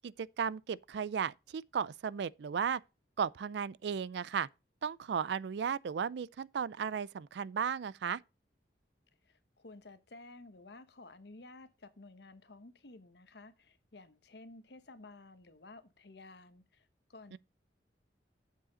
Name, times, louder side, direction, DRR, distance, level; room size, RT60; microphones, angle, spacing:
voice 1, 0.0-2.8 3.2-4.5 4.8-8.2 17.3-17.4, right 7 dB, 70° right, 0.4 m, -35 dB
voice 2, 9.2-17.4, left 2 dB, 65° left, 1.0 m, -54 dB
7.5 x 7.5 x 3.9 m
head